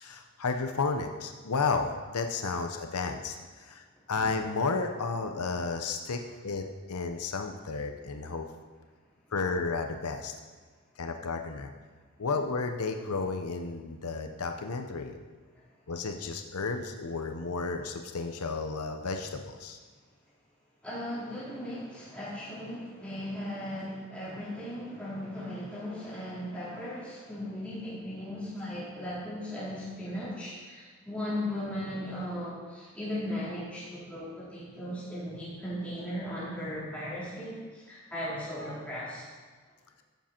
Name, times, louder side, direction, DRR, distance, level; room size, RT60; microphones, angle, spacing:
voice 1, 0.0-8.5 9.3-10.3 11.0-11.7 12.2-15.2 15.9-19.8, left 4 dB, 90° left, 5 dB, 0.8 m, -32 dB
voice 2, 20.8-39.2, left 1 dB, 5° left, -10 dB, 4.0 m, -37 dB
14.5 x 7.5 x 4.5 m, 1.5 s
head